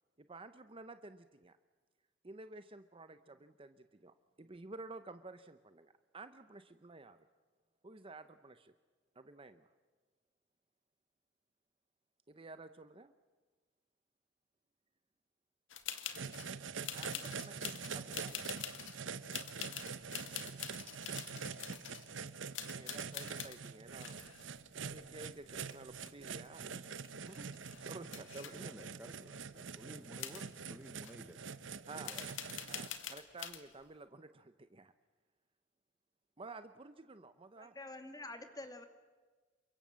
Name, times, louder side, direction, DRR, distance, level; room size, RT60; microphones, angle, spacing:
voice 1, 0.3-1.6 2.2-3.7 4.0-7.2 7.8-8.7 9.2-9.6 12.3-13.1 17.0-18.6 22.7-24.2 24.8-26.6 27.2-28.7 29.8-30.0 31.9-32.1 32.7-34.9 36.4-37.7, right 3 dB, 30° right, 10 dB, 0.8 m, -52 dB
sound 1, 15.7-16.5 16.8-19.0 19.3-22.1 22.5-23.6 24.0-25.4 25.7-26.5 26.8-26.9 27.0-28.5 29.4-29.5 30.2-30.4 31.0-31.1 32.0-33.6, left 10 dB, 80° left, 1.9 m, -45 dB
sound 2, 16.1-32.9, right 6 dB, 75° right, 1.0 m, -45 dB
voice 2, 28.5-31.4 31.9-32.3, right 1 dB, 10° right, 7 dB, 1.1 m, -54 dB
voice 3, 37.6-38.9, left 2 dB, 20° left, 7 dB, 2.3 m, -47 dB
28.5 x 24.0 x 7.5 m, 1.4 s
head